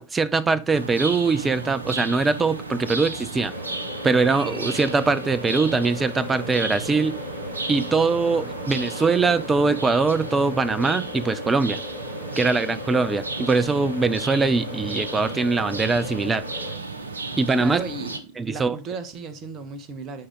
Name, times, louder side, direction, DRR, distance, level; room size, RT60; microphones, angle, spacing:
voice 1, 0.0-3.5 4.0-7.2 7.7-11.8 12.4-16.4 17.4-17.8 18.4-18.8, right 4 dB, 15° right, 0.5 m, -22 dB
sound 1, 0.7-18.2, right 3 dB, 75° right, 0.8 m, -34 dB
sound 2, 3.5-16.8, left 4 dB, 35° left, 1.8 m, -38 dB
voice 2, 17.6-18.2 18.5-20.3, right 4 dB, 30° right, 1.0 m, -35 dB
7.8 x 5.0 x 3.6 m
figure-of-eight pair, 90°, 0 cm